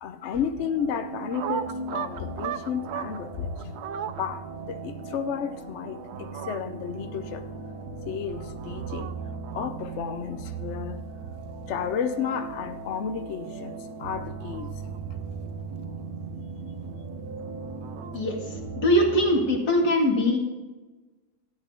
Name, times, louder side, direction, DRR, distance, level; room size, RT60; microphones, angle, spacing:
voice 1, 0.0-3.7 4.2-7.4 8.1-9.1 9.5-11.0 11.7-14.7, left 7 dB, 60° left, 9 dB, 0.9 m, -32 dB
sound 1, 0.6-19.6, right 4 dB, 80° right, 1.5 m, -38 dB
sound 2, 1.1-3.2 3.6-4.2 5.8-6.6 8.3-9.1 9.4-9.7 11.8-12.5 14.0-15.0 17.4-18.2, right 9 dB, 60° right, 0.7 m, -37 dB
voice 2, 18.1-20.4, equal, 80° left, 0 dB, 2.8 m, -22 dB
13.5 x 9.9 x 3.7 m, 1.2 s
omnidirectional pair, 1.6 m